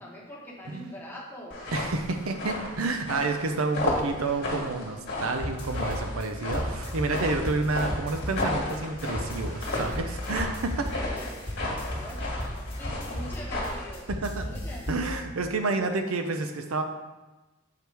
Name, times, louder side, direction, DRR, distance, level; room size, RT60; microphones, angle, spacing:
voice 1, 0.0-1.7 11.9-12.4 12.8-15.0, equal, 10° left, -4 dB, 1.0 m, -43 dB
sound 1, 1.5-13.9, left 2 dB, 50° left, 1.5 m, -34 dB
voice 2, 1.7-10.9 14.1-14.5 14.9-16.8, right 3 dB, 85° right, 6 dB, 0.6 m, -29 dB
sound 2, 5.4-15.2, equal, 25° left, 1.3 m, -36 dB
6.7 x 4.6 x 3.4 m, 1.1 s
head